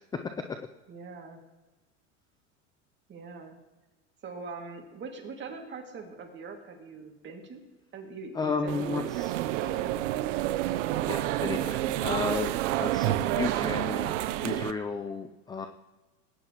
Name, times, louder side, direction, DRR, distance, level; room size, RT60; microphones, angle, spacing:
voice 1, 0.9-1.4 3.1-3.6 4.2-7.6 7.9-10.2, right 3 dB, 30° right, 2 dB, 2.2 m, -42 dB
voice 2, 8.4-9.3 11.0-14.2 14.4-15.7, left 4 dB, 10° left, 7 dB, 0.4 m, -33 dB
sound 1, 8.7-14.7, right 14 dB, 75° right, 0.7 m, -29 dB
19.5 x 9.7 x 3.0 m, 1.1 s
supercardioid pair, 120°, 37 cm